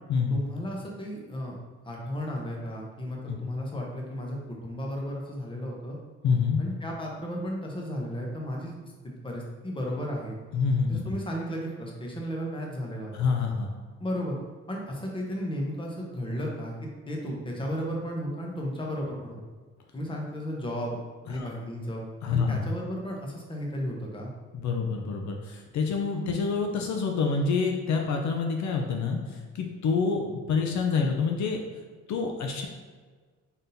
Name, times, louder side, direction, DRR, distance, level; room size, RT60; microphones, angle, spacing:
voice 1, 0.3-1.6 1.8-6.0 6.6-8.7 9.0-10.4 10.9-13.3 14.0-14.4 14.7-16.7 17.1-19.4 19.9-21.0 21.3-22.0 22.3-24.3, equal, 15° left, -1 dB, 0.9 m, -34 dB
voice 2, 6.2-6.6 10.5-11.0 13.1-13.9 21.3-21.5 22.2-22.6 24.5-31.6 32.1-32.7, left 5 dB, 70° left, 2 dB, 0.6 m, -27 dB
4.1 x 3.5 x 2.7 m, 1.5 s
cardioid pair, 90°, 30 cm